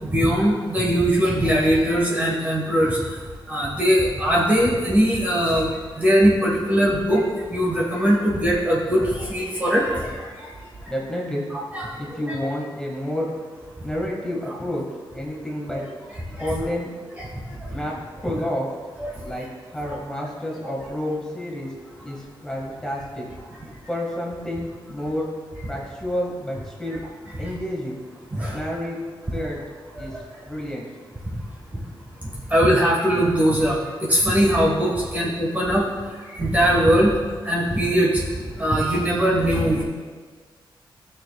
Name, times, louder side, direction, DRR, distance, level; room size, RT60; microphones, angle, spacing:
voice 1, 0.0-3.0 3.5-5.7 6.0-7.2 7.5-10.1 10.4-10.5 11.5-12.4 15.7-15.8 16.4-16.5 17.2-17.3 19.0-19.1 19.8-20.0 28.3-28.6 30.0-30.1 31.7-31.8 32.5-35.9 36.3-37.1 37.4-38.2 38.6-39.8, equal, 20° right, -4 dB, 1.4 m, -20 dB
voice 2, 10.9-11.5 12.0-13.3 13.8-14.8 15.1-15.8 16.4-16.9 17.7-17.9 18.2-18.7 19.2-19.5 19.7-21.7 22.0-23.2 23.9-25.3 25.7-27.0 27.4-28.0 28.5-29.6 30.0-30.1 30.4-30.9, left 1 dB, 5° left, -3 dB, 1.7 m, -29 dB
16.5 x 6.4 x 2.3 m, 1.5 s
wide cardioid pair, 145°, 9 cm